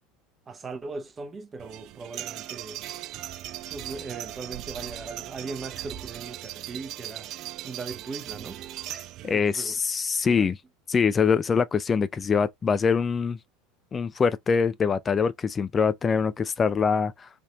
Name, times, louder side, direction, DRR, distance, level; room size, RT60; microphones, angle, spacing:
voice 1, 0.5-2.8 3.7-7.3 7.6-8.6 9.3-9.8 10.3-10.5, right 4 dB, 25° right, 0.8 m, -39 dB
sound 1, 1.6-9.4, right 13 dB, 55° right, 0.4 m, -38 dB
voice 2, 9.2-10.6 10.9-13.4 13.9-17.3, left 6 dB, 25° left, 0.4 m, -24 dB
3.4 x 2.7 x 2.8 m
hypercardioid pair, 85°, 0 cm